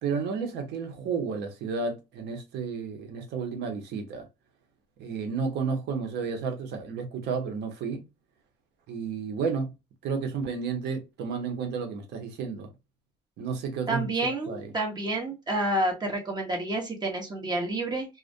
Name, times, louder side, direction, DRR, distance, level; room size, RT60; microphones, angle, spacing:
voice 1, 0.0-4.3 5.0-8.0 8.9-9.7 10.0-12.7 13.4-14.7, right 5 dB, 80° right, 0.8 m, -32 dB
voice 2, 13.9-18.1, right 1 dB, 25° right, 1.0 m, -29 dB
2.4 x 2.1 x 2.5 m
cardioid pair, 110°, 17 cm